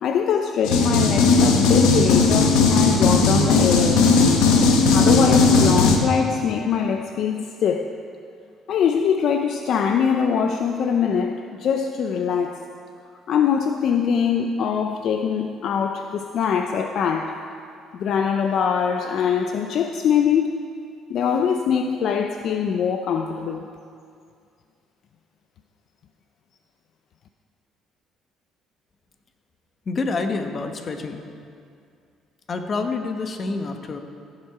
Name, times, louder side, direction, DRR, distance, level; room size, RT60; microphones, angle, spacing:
voice 1, 0.0-4.1 4.9-8.0 8.7-12.6 13.3-17.3 17.9-20.5 21.1-23.7, left 7 dB, 60° left, 5 dB, 0.5 m, -22 dB
sound 1, 0.6-6.0, left 4 dB, 90° left, 1.2 m, -17 dB
voice 2, 29.9-31.2 32.5-34.0, left 3 dB, 35° left, 5 dB, 1.0 m, -27 dB
16.0 x 7.4 x 4.8 m, 2.4 s
cardioid pair, 110°, 0 cm